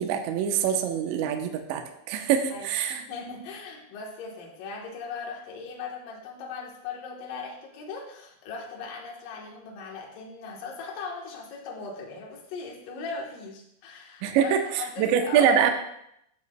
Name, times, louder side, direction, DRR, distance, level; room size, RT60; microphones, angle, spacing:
voice 1, 0.0-3.0 14.2-15.7, right 8 dB, 80° right, 4 dB, 2.7 m, -24 dB
voice 2, 2.5-15.6, left 4 dB, 90° left, -1 dB, 1.9 m, -39 dB
13.5 x 8.2 x 2.2 m, 0.76 s
omnidirectional pair, 5.8 m